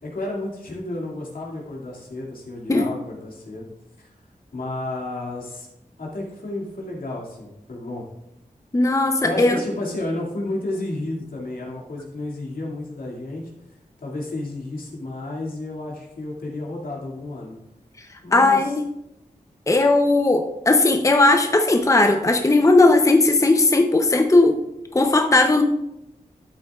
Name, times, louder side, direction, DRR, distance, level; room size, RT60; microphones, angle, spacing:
voice 1, 0.0-3.7 4.0-4.1 4.5-5.7 6.0-8.0 9.2-13.5 14.0-17.5 18.2-18.7, left 2 dB, 80° left, -3 dB, 2.3 m, -31 dB
voice 2, 8.7-9.6 18.3-18.8 19.7-24.6 24.9-25.6, left 2 dB, 20° left, 5 dB, 0.6 m, -17 dB
12.5 x 7.8 x 2.4 m, 0.88 s
wide cardioid pair, 85°, 14 cm